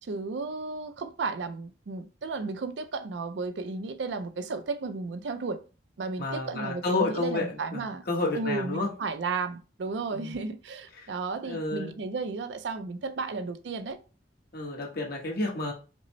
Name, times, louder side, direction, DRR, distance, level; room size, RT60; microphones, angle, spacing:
voice 1, 0.0-5.6 6.0-8.0 8.3-14.0, right 4 dB, 70° right, 0.4 m, -33 dB
voice 2, 6.2-8.9 10.1-10.3 11.4-11.9 14.5-15.7, left 2 dB, 60° left, 1.1 m, -30 dB
5.1 x 2.1 x 3.0 m
head